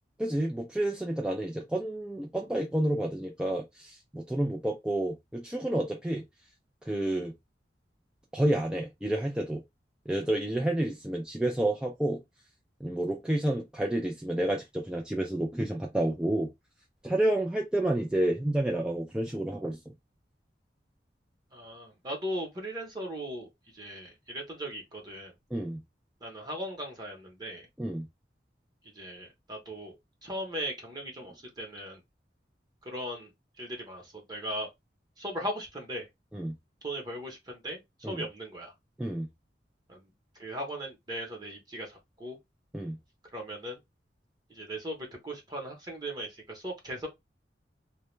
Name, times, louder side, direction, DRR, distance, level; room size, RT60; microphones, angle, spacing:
voice 1, 0.2-6.2 6.9-7.3 8.3-9.6 10.1-12.2 12.8-16.5 17.0-19.9 25.5-25.8 27.8-28.1 36.3-36.6 38.0-38.2 39.0-39.3 42.7-43.0, right 1 dB, 5° right, 0.3 m, -30 dB
voice 2, 21.5-25.3 26.2-27.7 28.8-32.0 32.8-33.3 33.6-34.7 35.2-36.1 36.8-38.7 39.9-40.1 40.4-42.4 43.3-43.8 44.5-47.1, equal, 25° right, 0.8 m, -38 dB
2.2 x 2.1 x 3.1 m
head